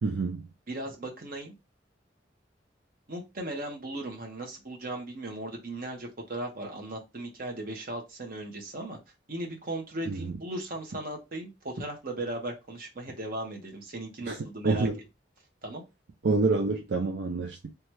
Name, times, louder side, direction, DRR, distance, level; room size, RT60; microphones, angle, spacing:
voice 1, 0.0-0.5 10.1-10.3 14.3-14.4 14.6-15.0 16.2-17.7, right 3 dB, 70° right, 0.4 m, -27 dB
voice 2, 0.7-1.5 3.1-9.0 9.3-14.9 15.6-15.8, right 1 dB, 50° right, 0.9 m, -37 dB
2.8 x 2.3 x 3.1 m
head